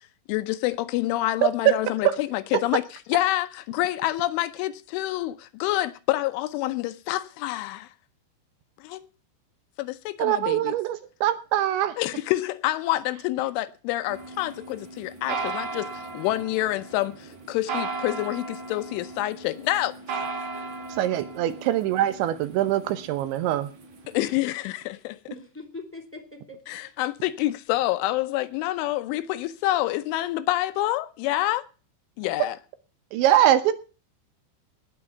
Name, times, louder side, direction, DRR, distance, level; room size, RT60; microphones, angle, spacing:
voice 1, 0.3-7.9 8.8-9.1 9.8-10.7 12.0-15.9 16.1-19.9 24.1-25.4 26.7-31.6 32.2-32.6, left 16 dB, 80° left, 3.2 m, -27 dB
voice 2, 10.2-11.9 21.0-23.7 33.1-33.7, right 12 dB, 75° right, 3.1 m, -23 dB
sound 1, 14.1-24.3, right 4 dB, 50° right, 2.6 m, -36 dB
voice 3, 25.3-26.6 33.7-33.8, left 2 dB, 5° left, 1.5 m, -40 dB
18.5 x 6.2 x 6.8 m
omnidirectional pair, 5.6 m